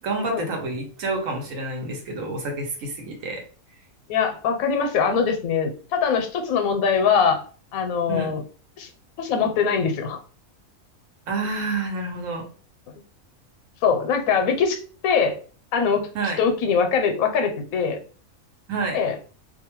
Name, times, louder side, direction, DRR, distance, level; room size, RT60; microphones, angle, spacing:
voice 1, 0.0-3.4 8.1-8.3 11.3-12.4 16.1-16.4 18.7-19.0, right 3 dB, 75° right, 2 dB, 1.2 m, -28 dB
voice 2, 4.1-7.4 7.7-8.4 8.8-8.9 9.2-10.2 13.8-15.4 15.7-16.1 16.4-18.0 18.9-19.2, left 6 dB, 85° left, 5 dB, 1.0 m, -22 dB
2.7 x 2.2 x 2.9 m, 0.40 s
omnidirectional pair, 1.4 m